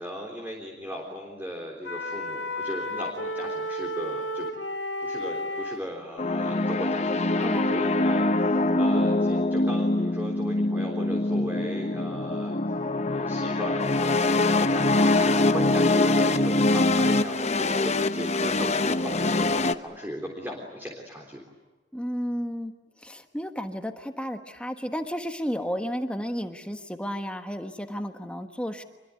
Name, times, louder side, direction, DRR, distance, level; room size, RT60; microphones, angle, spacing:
voice 1, 0.0-4.5 5.0-12.6 13.1-21.4, equal, 10° right, 0 dB, 3.6 m, -37 dB
sound 1, 1.9-5.8, left 1 dB, 75° left, 2.5 m, -32 dB
sound 2, 6.2-19.7, left 2 dB, 40° left, 0.9 m, -24 dB
voice 2, 7.4-7.8 21.9-22.7 23.0-28.8, equal, 5° left, 6 dB, 1.3 m, -32 dB
26.0 x 22.5 x 9.4 m, 1.2 s
head